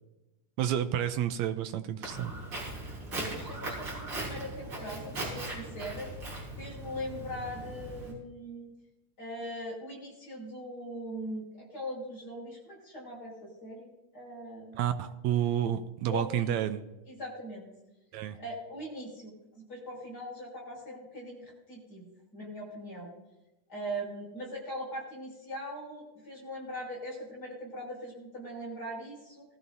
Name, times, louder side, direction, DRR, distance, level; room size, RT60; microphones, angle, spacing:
voice 1, 0.6-2.3 14.7-16.8 18.1-18.4, right 10 dB, 80° right, 9 dB, 1.7 m, -30 dB
Walk footsteps, 2.0-8.1, right 1 dB, 40° right, 5.0 m, -39 dB
voice 2, 3.1-6.1 6.6-8.7 9.2-14.8 16.1-16.8 17.1-17.7 18.4-23.1 23.7-29.4, equal, 25° left, -3 dB, 6.5 m, -41 dB
19.5 x 13.5 x 2.7 m, 1.0 s
omnidirectional pair, 3.8 m